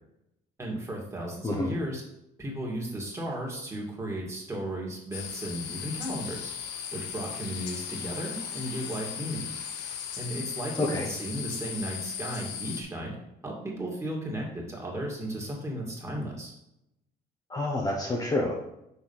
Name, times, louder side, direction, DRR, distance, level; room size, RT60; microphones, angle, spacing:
voice 1, 0.6-2.0 2.4-6.5 6.9-9.5 10.1-13.2 13.4-16.5, right 1 dB, 15° right, -2 dB, 2.3 m, -35 dB
sound 1, 5.1-12.8, left 8 dB, 90° left, 0.9 m, -37 dB
voice 2, 10.8-11.1 17.5-18.5, left 2 dB, 20° left, -1 dB, 1.1 m, -28 dB
6.5 x 4.4 x 5.7 m, 0.83 s
cardioid pair, 110°, 17 cm